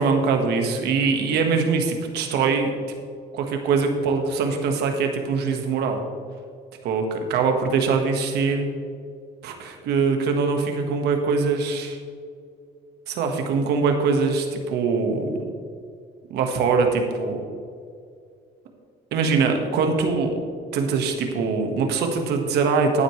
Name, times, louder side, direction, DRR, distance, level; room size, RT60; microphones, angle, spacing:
voice 1, 0.0-2.7 3.3-6.0 6.8-8.7 9.4-12.0 13.1-15.4 16.3-17.4 19.1-20.4 20.7-23.0, right 4 dB, 80° right, 4 dB, 1.6 m, -22 dB
11.5 x 9.8 x 3.3 m, 2.2 s
cardioid pair, 110°, 17 cm